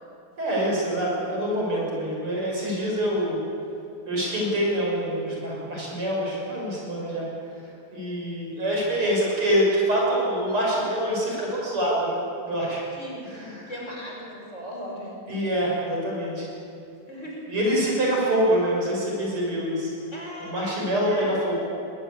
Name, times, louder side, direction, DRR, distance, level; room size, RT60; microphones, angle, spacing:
voice 1, 0.4-3.4 4.1-7.3 7.9-12.8 13.3-13.7 15.3-16.5 17.5-19.9 20.4-21.5, equal, 75° right, -3 dB, 7.3 m, -25 dB
voice 2, 13.0-15.2 17.1-17.5 20.1-21.3, equal, 30° left, -2 dB, 5.3 m, -38 dB
21.5 x 18.0 x 8.7 m, 2.7 s
omnidirectional pair, 2.4 m